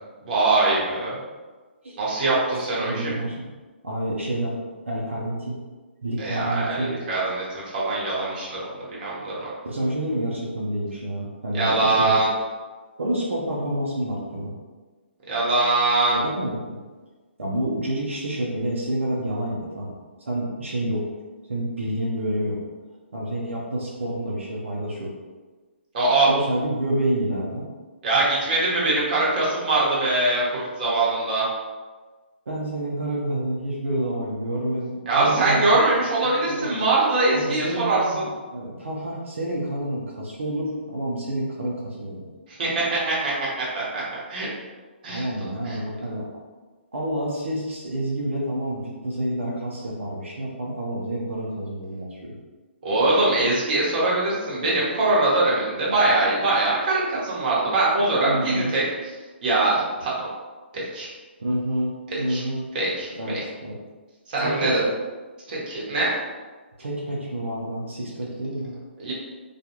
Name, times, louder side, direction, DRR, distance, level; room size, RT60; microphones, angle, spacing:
voice 1, 0.2-1.2 2.0-3.1 6.2-9.5 11.5-12.3 15.3-16.2 25.9-26.3 28.0-31.4 35.1-38.3 42.5-44.5 45.0-45.2 45.6-45.8 52.8-58.8 59.4-60.3 60.7-61.1 62.1-62.4 62.7-63.4 64.3-64.8 65.5-66.1 69.0-69.1, right 2 dB, 45° right, -6 dB, 1.0 m, -22 dB
voice 2, 2.5-3.5 3.8-4.6 4.9-5.6 6.0-7.0 9.6-12.3 13.0-14.5 16.1-16.8 17.4-21.1 21.5-22.6 23.1-25.1 26.2-27.7 32.5-35.8 36.4-36.7 37.3-42.3 45.1-46.2 46.9-52.4 58.2-58.7 61.4-62.7 63.2-63.8 64.4-64.9 66.8-68.7, right 1 dB, 85° right, -4 dB, 0.6 m, -28 dB
2.4 x 2.3 x 2.9 m, 1.3 s
hypercardioid pair, 145°, 7 cm